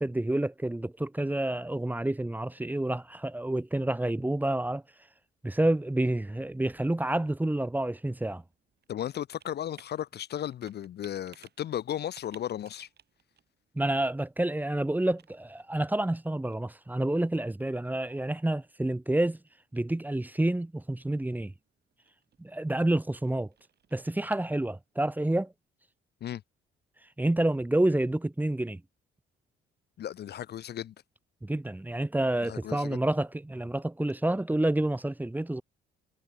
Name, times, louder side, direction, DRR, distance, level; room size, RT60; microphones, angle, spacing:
voice 1, 0.0-4.8 5.4-8.4 13.7-19.4 19.7-21.5 22.4-23.5 23.9-25.5 27.2-28.8 31.4-35.6, right 1 dB, 10° right, 1.0 m, -28 dB
Computer keyboard, 7.7-24.9, right 8 dB, 55° right, 4.8 m, -63 dB
voice 2, 8.9-12.9 26.2-26.4 30.0-30.9 32.4-33.0, left 11 dB, 55° left, 0.6 m, -35 dB
cardioid pair, 90°, 20 cm